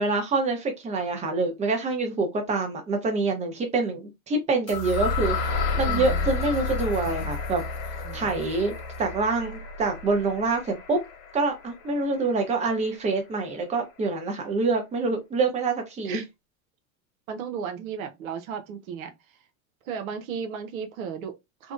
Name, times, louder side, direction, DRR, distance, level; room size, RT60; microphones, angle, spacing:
voice 1, 0.0-7.6 8.1-11.0 11.3-16.2, right 3 dB, 15° right, 0.7 m, -26 dB
sound 1, 4.7-12.6, left 3 dB, 55° left, 1.2 m, -31 dB
voice 2, 5.9-6.3 8.0-8.4 16.0-16.2 17.3-19.4 19.8-21.7, right 7 dB, 75° right, 0.7 m, -35 dB
2.6 x 2.0 x 2.5 m
hypercardioid pair, 105°, 42 cm